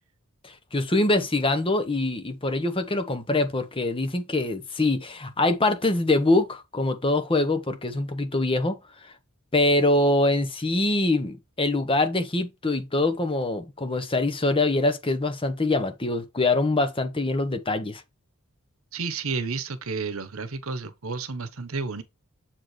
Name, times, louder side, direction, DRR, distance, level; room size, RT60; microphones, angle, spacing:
voice 1, 0.4-8.8 9.5-18.0, left 2 dB, 25° left, 1.0 m, -24 dB
voice 2, 18.9-22.0, right 4 dB, 70° right, 1.0 m, -31 dB
7.6 x 4.5 x 3.2 m
head